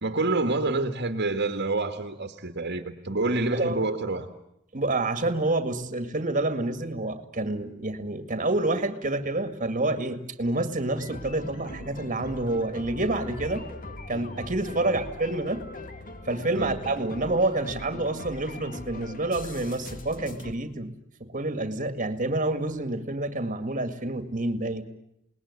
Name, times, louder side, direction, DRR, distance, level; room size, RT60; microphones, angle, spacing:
voice 1, 0.0-4.3 14.8-15.0 16.6-16.8, right 2 dB, 55° right, 1.9 m, -28 dB
voice 2, 3.5-3.9 4.7-13.6 14.1-15.7 16.3-20.9 21.2-24.8, right 2 dB, 40° right, 2.2 m, -28 dB
sound 1, 10.9-20.5, left 2 dB, 40° left, 2.0 m, -40 dB
28.5 x 20.0 x 9.8 m
head